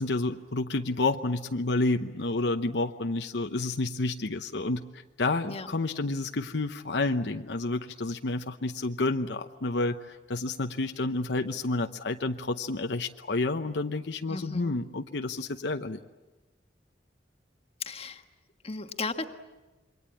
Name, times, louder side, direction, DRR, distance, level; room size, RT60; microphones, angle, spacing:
voice 1, 0.0-16.0, left 2 dB, 75° left, 6 dB, 0.9 m, -30 dB
voice 2, 14.3-14.8 17.8-18.2 18.6-19.2, left 3 dB, 35° left, 6 dB, 1.5 m, -35 dB
27.5 x 23.5 x 8.6 m, 1.1 s
head